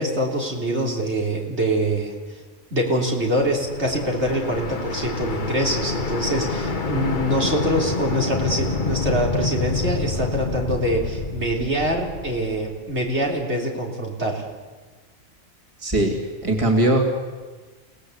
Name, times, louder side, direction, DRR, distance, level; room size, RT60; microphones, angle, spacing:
voice 1, 0.0-2.4 2.7-14.4, right 1 dB, 55° right, 0 dB, 3.8 m, -24 dB
sound 1, 3.1-13.1, left 3 dB, 40° left, 1.3 m, -28 dB
voice 2, 15.8-16.2 16.4-17.0, right 1 dB, 25° right, 1 dB, 3.1 m, -19 dB
29.5 x 18.0 x 8.2 m, 1.4 s
omnidirectional pair, 1.4 m